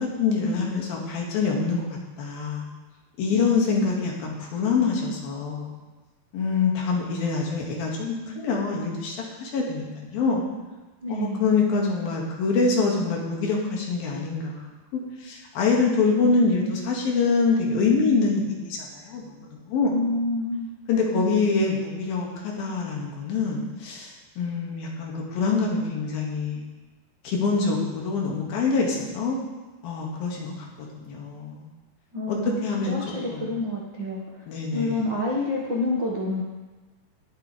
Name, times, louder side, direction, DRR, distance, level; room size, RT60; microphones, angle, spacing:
voice 1, 0.2-2.7 3.2-5.7 6.3-10.5 11.1-14.7 15.2-19.9 20.9-26.6 27.2-29.4 29.8-30.7 31.0-31.7 32.3-33.0 33.3-33.5 34.5-35.0, left 4 dB, 70° left, -2 dB, 3.6 m, -25 dB
voice 2, 3.3-3.8 11.0-11.5 19.9-20.7 32.1-34.4 34.7-36.4, left 2 dB, 55° right, -5 dB, 1.3 m, -28 dB
19.0 x 8.9 x 3.3 m, 1.2 s
omnidirectional pair, 4.5 m